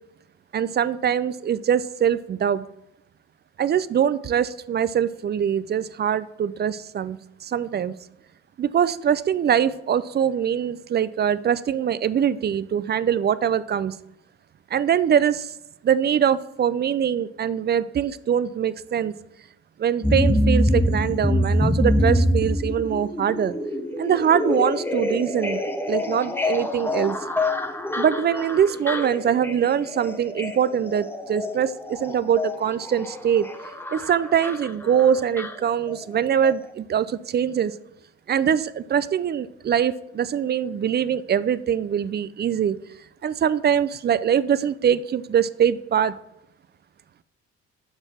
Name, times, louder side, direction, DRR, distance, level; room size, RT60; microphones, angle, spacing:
voice 1, 0.5-2.7 3.6-7.9 8.6-14.0 14.7-15.5 15.8-19.1 19.8-23.5 24.0-25.6 25.9-27.2 28.0-33.5 33.9-37.7 38.3-42.8 43.2-46.1, right 8 dB, 35° right, 0.4 m, -23 dB
sound 1, 20.0-36.2 36.4-36.5, left 1 dB, 5° left, 0.7 m, -25 dB
6.8 x 4.4 x 4.3 m
supercardioid pair, 65°, 30 cm